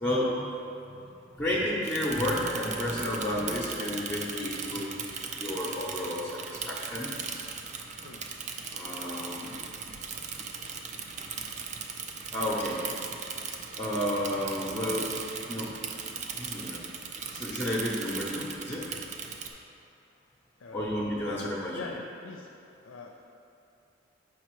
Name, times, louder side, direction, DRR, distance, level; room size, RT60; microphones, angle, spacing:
voice 1, 0.0-0.5 0.8-5.0 5.4-7.1 8.7-9.6 12.3-12.8 13.8-15.1 15.5-15.7 16.4-16.8 17.3-18.9 20.7-21.9, left 1 dB, 10° left, -5 dB, 0.6 m, -31 dB
Bicycle / Mechanisms, 1.8-19.5, right 5 dB, 35° right, 0.4 m, -38 dB
voice 2, 20.6-21.0 21.2-21.4 21.7-22.5 22.8-23.2, left 4 dB, 80° left, 2 dB, 0.4 m, -43 dB
6.6 x 4.9 x 3.1 m, 2.7 s
head